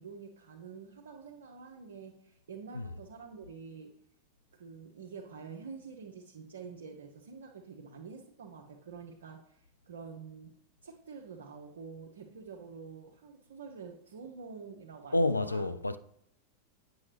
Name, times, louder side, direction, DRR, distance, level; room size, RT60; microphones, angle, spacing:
voice 1, 0.0-4.0 4.5-10.6 10.8-15.7, right 5 dB, 65° right, 0.7 m, -47 dB
voice 2, 15.1-16.0, left 2 dB, 80° left, 0.3 m, -29 dB
8.4 x 6.1 x 3.3 m
figure-of-eight pair, 90°, 0 cm